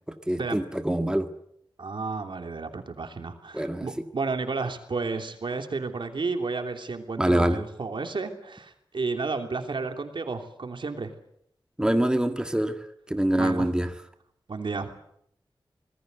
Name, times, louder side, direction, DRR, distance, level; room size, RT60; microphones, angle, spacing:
voice 1, 0.3-1.3 3.5-3.9 7.2-7.6 11.8-12.8 13.1-13.9, right 1 dB, 10° right, 7 dB, 1.7 m, -24 dB
voice 2, 1.8-11.1 13.4-13.7 14.5-14.9, right 4 dB, 75° right, 6 dB, 3.1 m, -32 dB
26.0 x 20.5 x 8.2 m, 0.74 s
wide cardioid pair, 85°, 8 cm